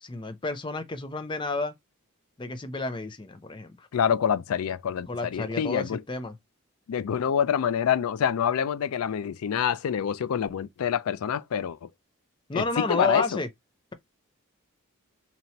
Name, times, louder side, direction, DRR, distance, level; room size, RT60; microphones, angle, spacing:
voice 1, 0.0-1.7 2.4-3.9 5.1-6.4 12.5-13.5, left 3 dB, 20° left, 0.5 m, -31 dB
voice 2, 3.9-6.0 6.9-11.9 12.5-13.2, left 8 dB, 85° left, 0.4 m, -26 dB
2.9 x 2.8 x 4.3 m
head